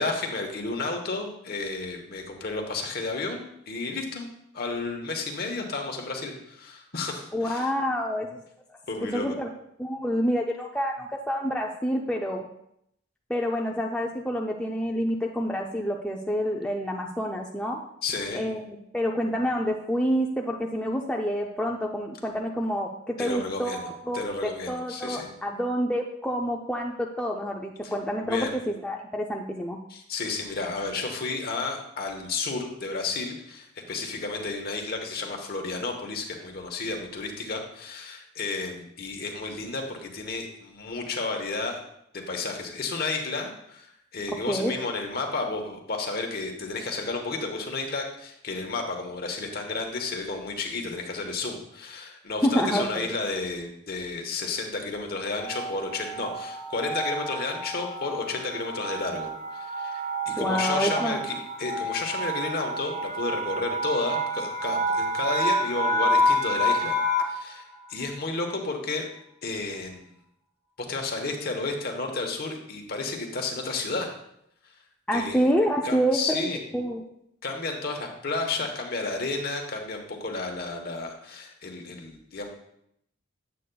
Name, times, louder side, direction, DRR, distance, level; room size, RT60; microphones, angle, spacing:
voice 1, 0.0-4.3 4.5-7.7 8.9-9.3 18.0-18.4 23.2-23.8 24.1-25.3 27.8-27.9 28.2-28.5 29.9-41.8 42.1-43.9 44.1-67.0 67.3-69.1 69.4-70.1 70.9-74.1 75.1-75.5 75.8-76.6 77.4-82.5, left 3 dB, 50° left, 2 dB, 1.0 m, -32 dB
voice 2, 7.3-8.4 9.1-9.5 9.8-12.5 13.3-17.8 18.3-29.8 44.5-44.7 52.4-53.1 60.4-61.2 75.1-77.0, equal, 5° left, -1 dB, 0.4 m, -28 dB
sound 1, 55.4-67.5, equal, 40° right, 0.7 m, -29 dB
8.3 x 7.6 x 2.3 m, 0.76 s
head